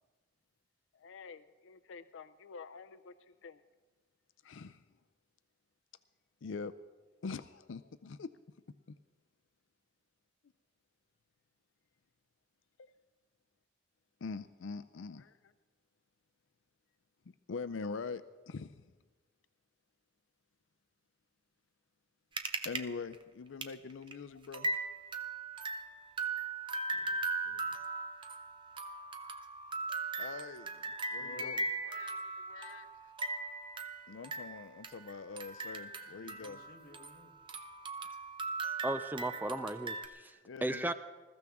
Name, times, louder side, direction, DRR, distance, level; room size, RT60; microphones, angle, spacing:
voice 1, 0.9-3.6 4.4-4.8 6.4-6.7 7.2-8.3 8.9-9.0 14.2-15.5 17.3-18.8 22.6-24.7 30.2-33.1 34.1-36.6 40.4-40.9, left 4 dB, 80° left, 13 dB, 0.5 m, -44 dB
sound 1, 22.4-22.8 23.1-23.2 23.6-23.7 24.1-24.2 24.5-37.2 37.5-40.1, right 3 dB, 25° right, 0.8 m, -39 dB
voice 2, 26.9-27.7 31.2-31.6 36.1-37.3, left 2 dB, 50° left, 3 dB, 1.5 m, -54 dB
voice 3, 38.8-40.9, right 1 dB, 10° right, 11 dB, 0.4 m, -36 dB
20.5 x 14.0 x 3.6 m, 1.3 s
head